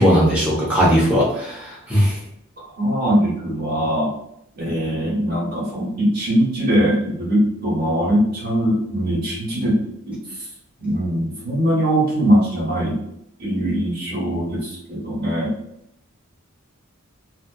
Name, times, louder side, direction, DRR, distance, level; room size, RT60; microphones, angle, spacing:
voice 1, 0.0-2.2, equal, 5° right, -7 dB, 0.7 m, -18 dB
voice 2, 2.8-4.1 4.6-9.8 10.1-10.2 10.8-13.0 13.4-15.5, equal, 45° right, -6 dB, 1.0 m, -21 dB
2.5 x 2.4 x 2.2 m, 0.76 s
head